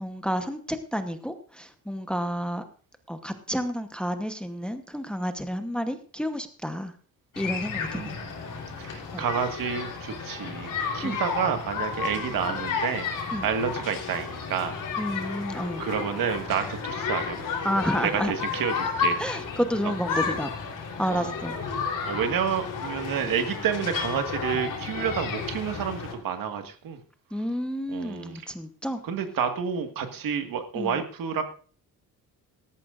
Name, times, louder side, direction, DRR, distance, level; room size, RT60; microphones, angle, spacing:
voice 1, 0.0-2.6 3.1-6.9 7.4-8.2 9.1-9.2 11.0-11.2 13.3-13.5 15.0-15.8 17.6-18.3 19.2-20.5 21.0-21.6 27.3-29.0 30.8-31.0, equal, 5° left, 8 dB, 1.0 m, -30 dB
sound 1, 7.3-26.1, left 5 dB, 60° left, 3.7 m, -32 dB
voice 2, 7.9-8.3 8.8-13.1 13.4-14.8 15.8-17.4 18.0-19.2 19.8-19.9 21.1-21.4 22.0-27.0 27.9-28.5 29.0-31.4, right 7 dB, 65° right, 7 dB, 1.8 m, -29 dB
17.5 x 14.0 x 2.5 m, 0.40 s
cardioid pair, 125°, 36 cm